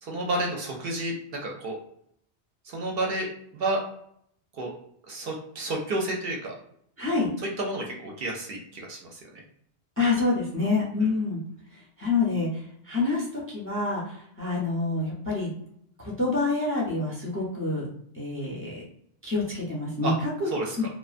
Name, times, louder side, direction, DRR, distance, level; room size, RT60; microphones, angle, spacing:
voice 1, 0.0-1.8 2.6-3.8 4.6-4.7 5.1-6.6 7.6-9.4 20.0-20.1 20.5-20.8, right 2 dB, 65° right, 0 dB, 0.7 m, -31 dB
voice 2, 7.0-7.3 10.0-11.4 11.7-15.5 16.0-17.8 18.1-18.8 19.2-20.5 20.8-20.9, left 3 dB, 15° left, -4 dB, 0.5 m, -27 dB
2.4 x 2.1 x 2.4 m, 0.69 s
omnidirectional pair, 1.1 m